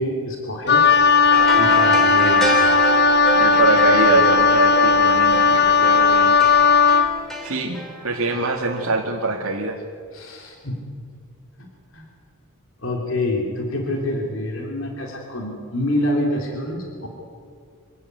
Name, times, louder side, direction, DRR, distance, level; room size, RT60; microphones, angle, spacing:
voice 1, 0.0-2.8 10.1-10.9 11.9-12.0 12.8-17.1, left 1 dB, 65° left, 0 dB, 3.5 m, -27 dB
Wind instrument woodwind instrument, 0.7-7.1, left 5 dB, 50° left, 0.9 m, -16 dB
sound 1, 1.3-8.9 9.2-9.3, right 1 dB, ahead, 3.7 m, -29 dB
voice 2, 3.4-6.6 7.4-9.8, right 3 dB, 80° right, -2 dB, 2.4 m, -23 dB
26.0 x 18.0 x 8.3 m, 2.2 s
head